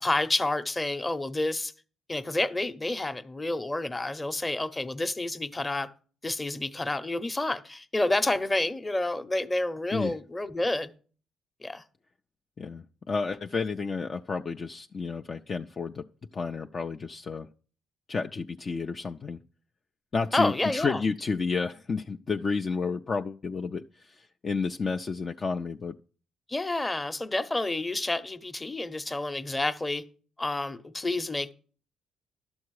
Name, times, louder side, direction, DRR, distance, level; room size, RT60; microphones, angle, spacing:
voice 1, 0.0-1.7 2.1-5.9 6.2-10.9 11.6-11.8 20.3-21.0 26.5-30.0 30.4-31.5, left 2 dB, 20° left, 0.8 m, -29 dB
voice 2, 12.6-16.0 16.3-17.5 18.1-19.4 20.1-25.9, left 4 dB, 40° left, 0.4 m, -31 dB
12.0 x 7.1 x 4.8 m
cardioid pair, 90°, 0 cm